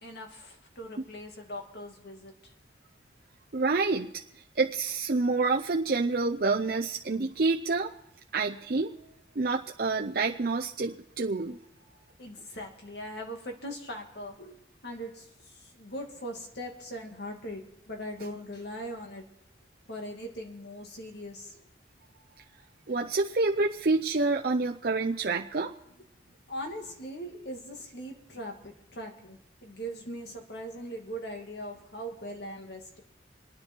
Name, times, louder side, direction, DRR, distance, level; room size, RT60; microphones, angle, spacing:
voice 1, 0.0-2.3 12.2-14.6 14.8-19.2 19.9-21.6 26.5-33.0, equal, 60° left, 3 dB, 2.4 m, -40 dB
voice 2, 3.5-4.1 4.6-7.9 8.3-8.9 9.4-11.6 22.9-25.7, right 3 dB, 50° right, 1 dB, 0.6 m, -27 dB
27.5 x 9.8 x 4.5 m, 0.80 s
head